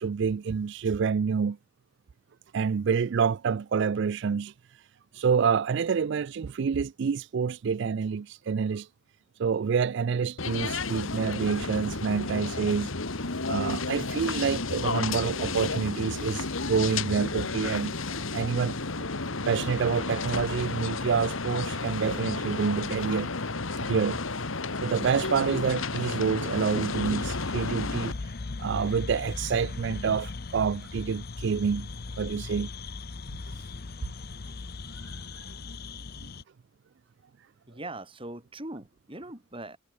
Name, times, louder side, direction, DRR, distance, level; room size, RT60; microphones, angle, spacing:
voice 1, 0.0-1.6 2.5-4.9 5.1-8.9 9.4-12.9 13.5-18.8 19.5-23.3 23.8-24.2 24.8-31.9 32.2-32.7 33.5-33.7 35.0-35.6 36.2-36.3, right 6 dB, 60° right, 0.4 m, -28 dB
sound 1, 10.4-28.1, left 3 dB, 75° left, 1.9 m, -32 dB
sound 2, 26.9-36.4, left 3 dB, 50° left, 0.7 m, -38 dB
voice 2, 37.7-39.8, right 2 dB, 25° right, 5.1 m, -41 dB
head